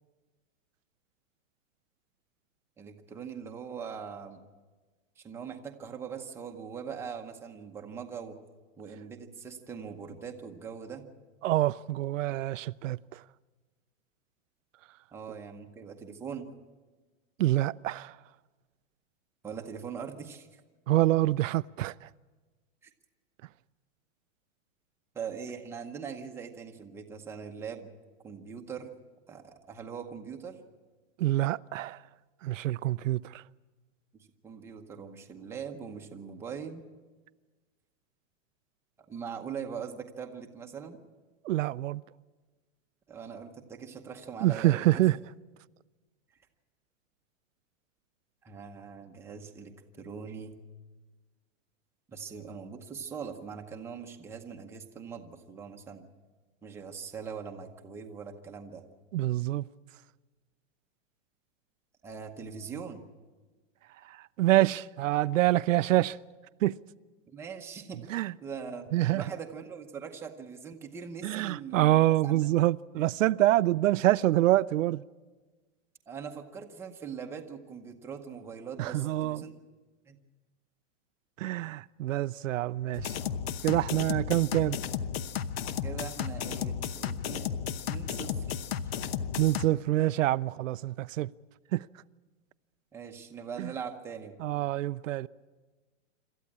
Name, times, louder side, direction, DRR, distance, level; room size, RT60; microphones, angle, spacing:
voice 1, 2.8-4.4 5.2-8.4 8.8-11.0 15.1-16.5 19.4-20.6 22.8-22.9 25.1-27.9 28.2-28.9 29.3-30.6 34.1-36.8 39.1-41.0 43.1-45.1 48.4-50.6 52.1-56.0 56.6-58.8 62.0-63.0 67.3-68.0 68.4-72.5 73.0-73.1 76.1-79.5 80.1-80.2 85.8-87.5 87.9-88.6 92.9-94.3, right 6 dB, 5° right, 0.8 m, -41 dB
voice 2, 11.4-13.2 17.4-18.2 20.9-22.1 31.2-32.0 32.4-33.4 41.4-42.0 44.4-45.2 59.1-59.7 64.1-66.2 66.6-66.8 68.1-68.3 68.9-69.2 71.2-75.0 78.8-79.4 81.4-83.2 83.6-84.8 89.4-91.3 91.7-91.9 93.6-93.7 94.4-95.3, right 15 dB, 85° right, 0.6 m, -26 dB
sound 1, 82.9-89.7, left 8 dB, 55° left, 0.9 m, -34 dB
27.0 x 13.5 x 8.6 m
supercardioid pair, 165°, 37 cm